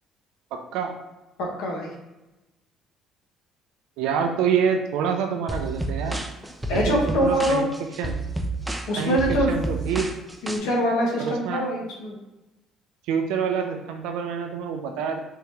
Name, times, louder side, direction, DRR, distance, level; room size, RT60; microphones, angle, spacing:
voice 1, 0.5-0.9 4.0-6.2 6.7-7.7 8.0-8.2 9.0-9.2 9.5-10.1 11.2-11.7 13.1-15.2, right 7 dB, 90° right, 4 dB, 0.4 m, -26 dB
voice 2, 1.4-1.9 6.7-7.7 8.9-9.5 10.4-12.2, equal, 85° left, -1 dB, 1.0 m, -24 dB
sound 1, 5.5-10.6, right 2 dB, 10° right, 0.4 m, -30 dB
3.6 x 2.9 x 3.3 m, 1.0 s
cardioid pair, 140°, 0 cm